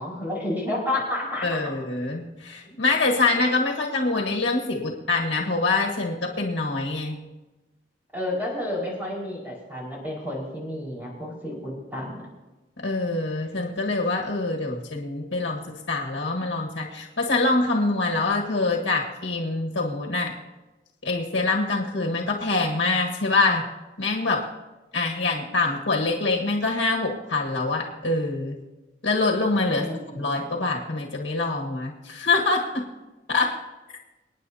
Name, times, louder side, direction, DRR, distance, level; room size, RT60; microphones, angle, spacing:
voice 1, 0.0-1.7 8.1-12.3 29.7-30.4, left 1 dB, 10° right, -5 dB, 4.9 m, -31 dB
voice 2, 1.4-7.2 12.8-20.3 21.0-23.7 24.0-24.4 24.9-28.6 29.0-29.9 30.1-32.8 33.3-33.5, left 3 dB, 75° left, 0 dB, 1.5 m, -25 dB
26.5 x 9.5 x 2.8 m, 1.1 s
head